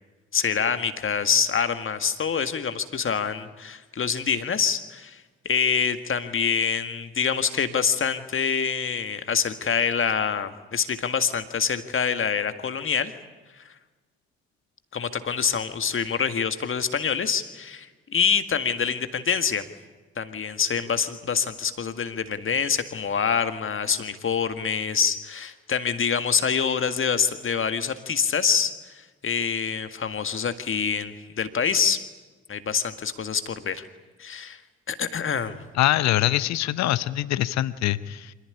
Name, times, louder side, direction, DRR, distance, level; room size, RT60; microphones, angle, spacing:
voice 1, 0.3-13.1 13.5-13.6 14.9-19.7 20.2-32.0 32.5-33.8 34.2-34.6 34.9-35.6, left 6 dB, 40° left, 9 dB, 1.8 m, -26 dB
voice 2, 35.8-38.3, left 14 dB, 55° left, 17 dB, 0.9 m, -23 dB
25.5 x 18.5 x 10.0 m, 1.3 s
figure-of-eight pair, 45°, 33 cm